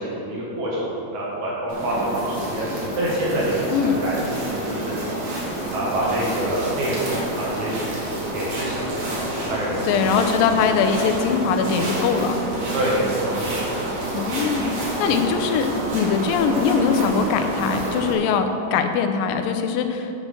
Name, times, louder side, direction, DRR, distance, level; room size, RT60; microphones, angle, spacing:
voice 1, 0.0-2.7 3.0-4.9 5.7-7.1 7.4-7.9 8.3-8.9 9.5-10.0 12.7-13.6 15.0-15.3, right 1 dB, 65° right, -5 dB, 2.8 m, -26 dB
sound 1, 1.7-18.1, right 1 dB, 45° right, 2.2 m, -28 dB
sound 2, 1.8-8.8, left 4 dB, 65° left, 1.2 m, -48 dB
voice 2, 3.7-4.0 9.8-12.4 14.1-14.7 15.0-20.1, left 6 dB, 85° left, 7 dB, 2.4 m, -22 dB
9.0 x 5.9 x 6.7 m, 2.8 s
omnidirectional pair, 4.0 m